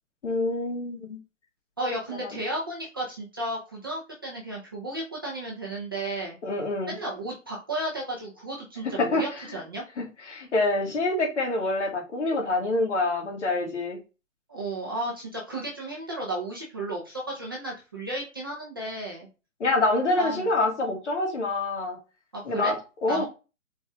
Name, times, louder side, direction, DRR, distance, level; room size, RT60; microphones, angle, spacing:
voice 1, 0.2-1.2 6.4-6.9 9.0-9.2 10.0-14.0 19.6-22.0 22.4-22.8 23.0-23.2, left 2 dB, 60° left, 1.7 m, -26 dB
voice 2, 1.8-6.4 6.9-9.8 14.5-19.3 20.2-20.4 22.3-22.7 23.1-23.2, right 1 dB, 20° right, 0.4 m, -33 dB
4.2 x 2.3 x 3.5 m
hypercardioid pair, 145°, 39 cm